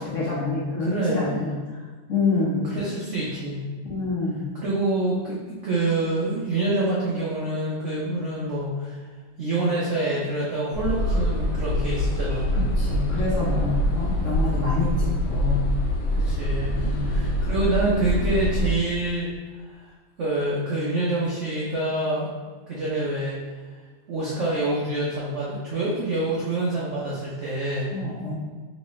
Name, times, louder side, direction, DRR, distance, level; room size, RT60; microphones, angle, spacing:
voice 1, 0.0-1.8 2.1-2.7 3.9-4.5 12.5-15.6 16.7-17.1 27.9-28.3, left 3 dB, 60° left, -8 dB, 0.8 m, -27 dB
voice 2, 0.8-1.4 2.7-3.7 4.6-9.0 9.4-12.6 16.2-19.3 19.8-19.9 20.2-22.3 22.7-23.4 24.1-27.9, right 2 dB, 80° right, -6 dB, 0.6 m, -26 dB
sound 1, 10.7-18.7, equal, 85° left, 1.4 m, -25 dB
3.1 x 3.1 x 3.0 m, 1.4 s
omnidirectional pair, 2.0 m